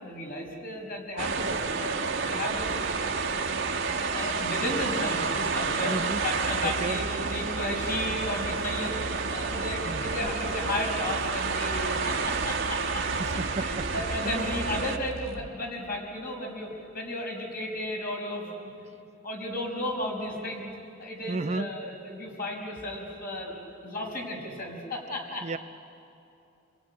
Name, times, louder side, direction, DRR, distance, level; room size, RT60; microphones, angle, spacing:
voice 1, 0.0-2.0 2.3-6.0 6.2-9.0 9.3-18.7 19.2-20.7 21.0-23.5 23.8-25.5, left 1 dB, 45° left, 0 dB, 5.5 m, -34 dB
sound 1, 1.2-15.0, right 4 dB, 65° right, 1.5 m, -30 dB
voice 2, 5.9-6.2 6.6-7.0 9.9-10.1 13.2-13.9 14.2-14.5 21.3-21.7 25.4-25.6, right 3 dB, 35° right, 12 dB, 0.5 m, -32 dB
sound 2, 6.1-15.6, right 2 dB, 90° right, 1.2 m, -41 dB
29.5 x 21.5 x 9.5 m, 2.7 s
head